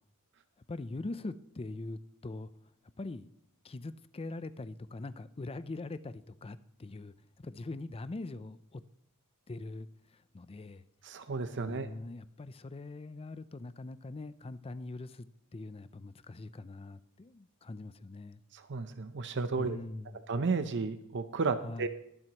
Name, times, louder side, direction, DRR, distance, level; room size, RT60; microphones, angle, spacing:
voice 1, 0.7-2.5 3.0-3.3 3.6-8.8 9.5-10.8 11.6-15.3 15.5-18.4 19.6-20.2 21.6-21.9, left 2 dB, 25° left, 0.5 m, -42 dB
voice 2, 11.0-11.9 18.5-19.8 20.3-21.9, right 4 dB, 55° right, 0.7 m, -33 dB
22.0 x 7.7 x 3.0 m
head